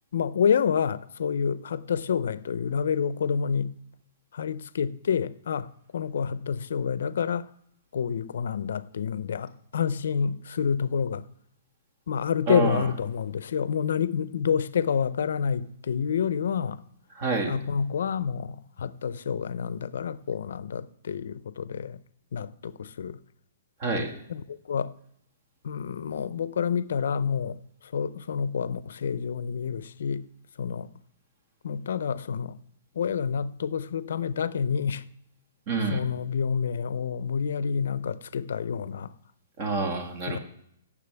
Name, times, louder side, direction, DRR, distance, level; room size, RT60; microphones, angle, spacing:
voice 1, 0.1-3.7 4.3-7.5 7.9-11.2 12.1-16.8 17.5-22.0 22.3-23.2 24.3-24.9 25.6-30.3 30.6-30.9 31.6-32.6 33.0-35.0 35.9-39.1 40.3-40.4, left 7 dB, 75° left, 0.5 m, -28 dB
voice 2, 12.5-12.9 17.2-17.5 23.8-24.1 35.7-36.0 39.6-40.4, right 3 dB, 35° right, 1.8 m, -27 dB
16.5 x 7.2 x 3.4 m
hypercardioid pair, 165°, 0 cm